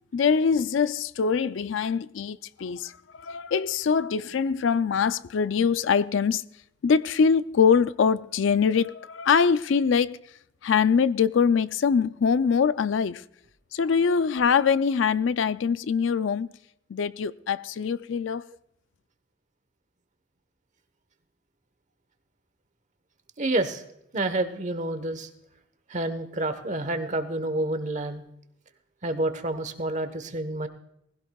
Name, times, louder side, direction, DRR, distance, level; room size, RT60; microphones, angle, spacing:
voice 1, 0.1-6.4 6.8-10.2 10.6-13.2 13.7-16.5 16.9-18.4, left 6 dB, 70° left, 0.4 m, -23 dB
voice 2, 23.4-23.8 24.1-25.3 25.9-28.2 29.0-30.7, right 2 dB, 40° right, 1.1 m, -28 dB
19.5 x 16.0 x 2.3 m
head